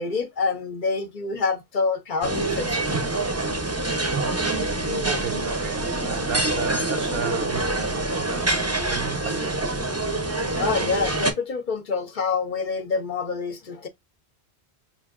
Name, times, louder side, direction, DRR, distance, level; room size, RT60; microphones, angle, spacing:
voice 1, 0.0-2.8 10.6-13.9, left 4 dB, 55° left, 0.7 m, -27 dB
sound 1, 2.2-11.3, right 2 dB, 20° right, 0.6 m, -26 dB
voice 2, 5.0-9.7, right 7 dB, 65° right, 0.9 m, -34 dB
5.5 x 2.5 x 2.4 m
omnidirectional pair, 1.1 m